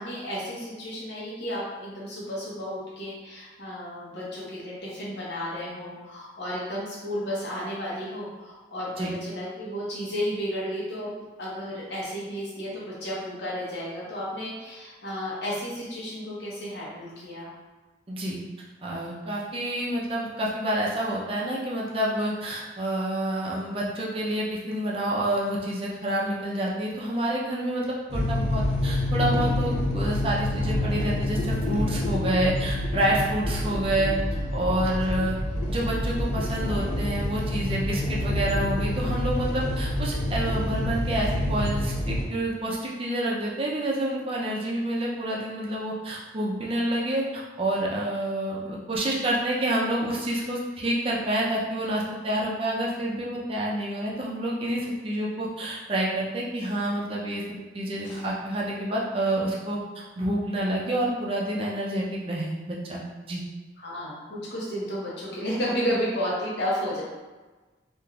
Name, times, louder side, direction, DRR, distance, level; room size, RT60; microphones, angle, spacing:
voice 1, 0.0-17.5 34.8-35.2 58.0-58.3 63.8-67.0, equal, 70° left, -6 dB, 0.9 m, -32 dB
voice 2, 18.1-18.4 18.8-34.1 34.5-35.4 35.7-57.4 57.7-63.0 63.3-63.4, right 1 dB, 30° right, -4 dB, 0.4 m, -28 dB
sound 1, 28.1-42.2, left 1 dB, 35° left, 0.6 m, -27 dB
3.4 x 2.5 x 2.3 m, 1.2 s
head